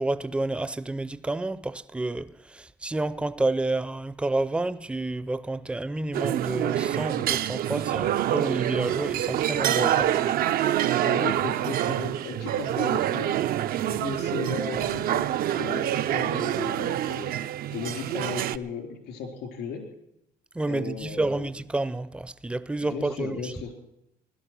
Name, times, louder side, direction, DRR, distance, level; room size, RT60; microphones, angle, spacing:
voice 1, 0.0-10.2 20.5-23.5, right 2 dB, 5° right, 0.5 m, -30 dB
sound 1, 6.1-18.6, right 12 dB, 60° right, 0.5 m, -26 dB
voice 2, 9.7-10.4 11.0-13.4 13.9-17.4 17.7-19.9 20.7-21.5 22.9-23.7, left 5 dB, 80° left, 4.0 m, -36 dB
16.5 x 12.0 x 6.1 m
cardioid pair, 110°, 17 cm